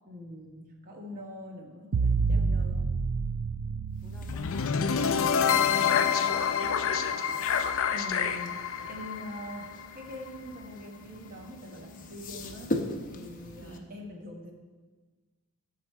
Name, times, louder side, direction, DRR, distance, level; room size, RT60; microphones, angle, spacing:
voice 1, 0.1-2.9 5.8-6.1 7.9-14.5, left 1 dB, 40° right, 1 dB, 1.1 m, -44 dB
sound 1, 1.9-5.0, right 4 dB, 70° right, 0.4 m, -29 dB
sound 2, 3.9-13.8, left 1 dB, 40° left, 0.8 m, -41 dB
voice 2, 4.0-5.2 5.7-6.9 13.6-13.9, equal, 10° left, 0 dB, 1.5 m, -51 dB
sound 3, 4.3-10.4, left 7 dB, 65° left, 0.5 m, -27 dB
12.0 x 5.9 x 4.5 m, 1.4 s
head